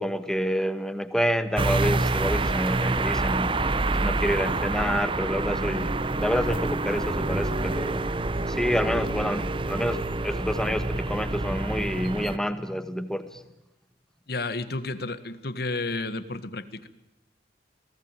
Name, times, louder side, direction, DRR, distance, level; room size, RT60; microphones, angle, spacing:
voice 1, 0.0-3.6 4.0-8.1 8.5-13.4, equal, 5° left, 10 dB, 1.7 m, -28 dB
sound 1, 1.6-12.4, right 2 dB, 30° right, 0.9 m, -27 dB
voice 2, 14.3-16.9, left 3 dB, 60° left, 12 dB, 1.7 m, -31 dB
28.5 x 19.0 x 9.1 m, 0.87 s
head